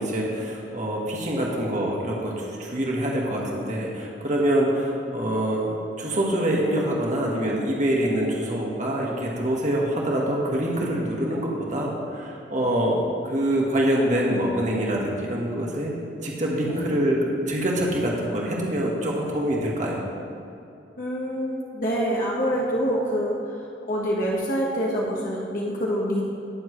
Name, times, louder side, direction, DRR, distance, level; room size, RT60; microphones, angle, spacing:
voice 1, 0.0-5.7 6.0-15.9 16.2-20.0, right 1 dB, 40° right, -2 dB, 1.7 m, -25 dB
voice 2, 21.0-26.2, equal, 50° left, -4 dB, 1.4 m, -26 dB
20.0 x 7.3 x 3.2 m, 2.7 s
head